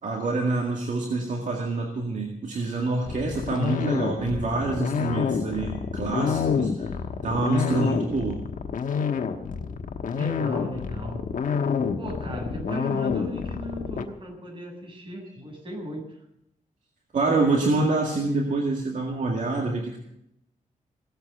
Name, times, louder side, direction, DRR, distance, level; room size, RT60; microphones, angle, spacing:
voice 1, 0.0-6.9 7.2-8.5 17.1-20.0, right 3 dB, 65° right, 1 dB, 2.1 m, -26 dB
sound 1, 3.1-14.0, left 6 dB, 75° left, 1.2 m, -28 dB
voice 2, 10.1-11.2 12.0-16.0, left 1 dB, 40° right, 0 dB, 7.3 m, -36 dB
17.5 x 8.2 x 8.0 m, 0.78 s
cardioid pair, 95°, 14 cm